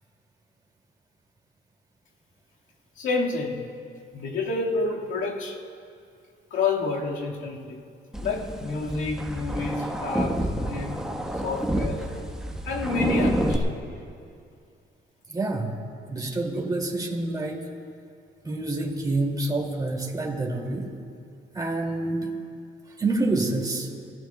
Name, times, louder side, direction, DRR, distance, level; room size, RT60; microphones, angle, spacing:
voice 1, 3.0-3.7 4.1-5.6 6.5-7.8 8.2-11.1 11.4-12.3 12.6-13.7, left 3 dB, 75° left, -2 dB, 2.1 m, -29 dB
sound 1, 8.1-13.6, right 1 dB, 5° right, 1.4 m, -28 dB
voice 2, 15.3-15.8 16.1-17.7 18.4-20.9 21.5-22.3 22.9-23.9, right 2 dB, 20° right, -1 dB, 2.7 m, -27 dB
29.0 x 15.5 x 2.4 m, 2.4 s
cardioid pair, 90°, 20 cm